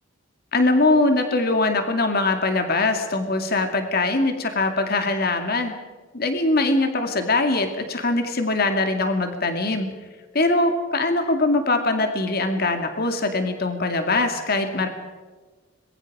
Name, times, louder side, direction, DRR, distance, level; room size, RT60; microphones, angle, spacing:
voice 1, 0.5-5.7 6.1-9.9 10.3-14.9, left 2 dB, 50° left, 6 dB, 2.4 m, -22 dB
25.5 x 22.0 x 5.0 m, 1.3 s
head